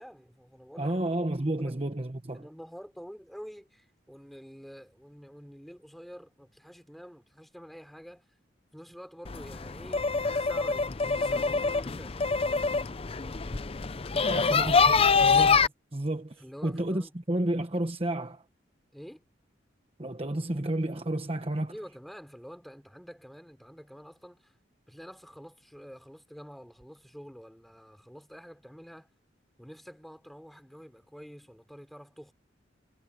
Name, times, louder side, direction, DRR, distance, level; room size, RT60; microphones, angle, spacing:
voice 1, 0.0-1.0 1.5-1.7 2.3-8.3 8.7-10.8 11.2-12.5 14.1-14.6 16.4-17.1 18.9-19.2 21.7-24.5 24.9-29.1 29.6-32.3, equal, ahead, 3.7 m, -48 dB
voice 2, 0.8-2.5 14.2-18.4 20.0-21.7, right 1 dB, 30° right, 1.2 m, -31 dB
sound 1, 9.2-15.7, left 5 dB, 30° left, 0.6 m, -25 dB
head